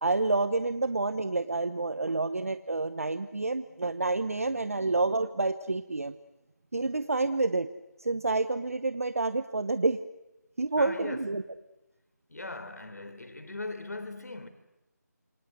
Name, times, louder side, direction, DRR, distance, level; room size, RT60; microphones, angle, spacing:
voice 1, 0.0-6.1 6.7-7.7 8.0-10.0 10.6-11.4, right 3 dB, 50° right, 1.0 m, -28 dB
voice 2, 4.3-4.7 10.8-11.5 12.3-14.5, left 2 dB, 65° left, 4.1 m, -40 dB
28.0 x 25.0 x 8.1 m
figure-of-eight pair, 180°, 10 cm